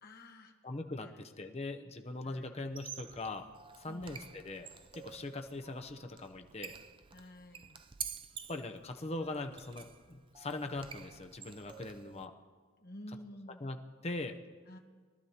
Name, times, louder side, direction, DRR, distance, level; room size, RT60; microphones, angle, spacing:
voice 1, 0.0-0.5 1.0-1.5 2.2-2.6 3.9-4.1 7.1-7.8 12.8-13.6 14.7-14.8, left 1 dB, 45° left, 3 dB, 1.2 m, -51 dB
voice 2, 0.6-3.5 3.8-4.7 4.9-6.7 8.5-12.3 13.6-14.4, left 2 dB, 30° left, 5 dB, 0.7 m, -41 dB
Squeak, 2.6-12.3, right 7 dB, 25° right, 0.3 m, -49 dB
23.0 x 12.0 x 2.9 m, 1.5 s
head